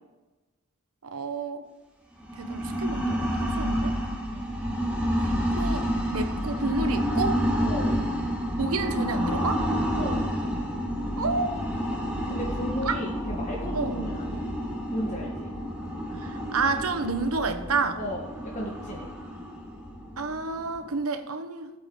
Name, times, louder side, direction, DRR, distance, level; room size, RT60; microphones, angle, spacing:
voice 1, 1.0-1.7 2.4-4.0 5.6-7.4 8.6-9.6 11.2-11.6 12.8-13.0 13.7-13.9 16.2-18.0 20.2-21.8, right 4 dB, 80° right, 8 dB, 1.2 m, -30 dB
sound 1, 2.2-20.9, equal, 5° right, 2.1 m, -29 dB
voice 2, 12.3-14.5 14.9-15.5 18.0-18.2 18.5-19.1, equal, 35° left, -3 dB, 1.5 m, -35 dB
18.5 x 8.2 x 3.9 m, 1.1 s
head